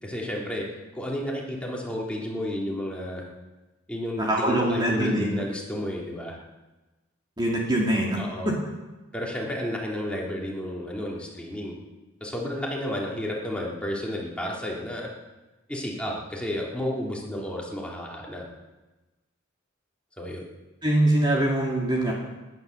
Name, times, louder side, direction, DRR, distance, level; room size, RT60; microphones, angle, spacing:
voice 1, 0.0-0.7 0.9-3.2 3.9-6.4 8.2-8.5 9.1-11.7 12.2-15.1 15.7-18.5 20.2-20.5, left 1 dB, 5° left, -3 dB, 3.1 m, -32 dB
voice 2, 4.2-5.4 7.4-8.2 8.4-8.5 20.8-22.1, right 1 dB, 25° right, -2 dB, 2.2 m, -23 dB
19.5 x 10.5 x 6.7 m, 1.1 s
head